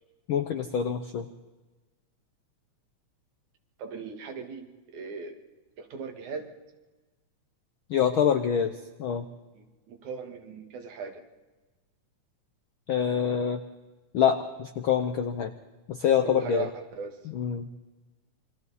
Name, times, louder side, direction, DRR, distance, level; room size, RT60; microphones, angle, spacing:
voice 1, 0.3-1.3 7.9-8.7 9.0-9.2 12.9-13.6 14.1-15.5 15.9-16.7 17.3-17.7, left 8 dB, 75° left, 7 dB, 1.2 m, -25 dB
voice 2, 3.8-4.7 4.9-5.3 5.8-6.5 9.5-11.2 16.2-17.2, right 5 dB, 75° right, 5 dB, 3.3 m, -38 dB
28.0 x 23.5 x 4.2 m, 1.2 s
omnidirectional pair, 3.4 m